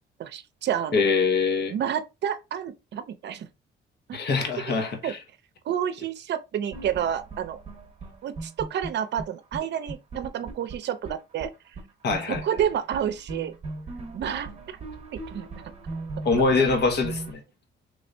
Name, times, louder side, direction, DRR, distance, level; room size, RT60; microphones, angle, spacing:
voice 1, 0.2-1.0 1.7-3.5 4.1-4.2 4.7-4.8 5.0-5.1 5.7-7.6 8.2-11.5 12.3-13.5 14.1-14.5 15.3-15.5, right 9 dB, 60° right, 0.6 m, -29 dB
voice 2, 0.9-1.7 4.1-5.2 12.0-12.4 16.2-17.4, left 4 dB, 55° left, 1.1 m, -23 dB
sound 1, 6.7-9.3 9.5-9.6 9.9-11.5 11.8-11.9 12.1-17.3, right 3 dB, 30° right, 1.0 m, -38 dB
3.2 x 3.2 x 2.6 m
cardioid pair, 90°, 20 cm